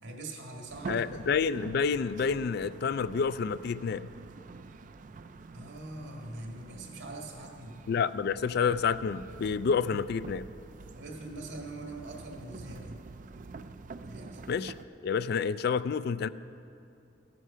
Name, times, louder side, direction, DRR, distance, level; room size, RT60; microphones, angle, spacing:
voice 1, 0.0-1.2 5.5-7.8 10.9-13.0 14.0-14.4, right 2 dB, 80° right, 1 dB, 1.9 m, -43 dB
sound 1, 0.7-14.9, right 3 dB, 45° right, 0.4 m, -46 dB
voice 2, 0.9-4.1 7.9-10.5 14.5-14.7 15.0-16.3, left 6 dB, 55° left, 15 dB, 0.3 m, -29 dB
15.0 x 9.5 x 5.7 m, 2.5 s
head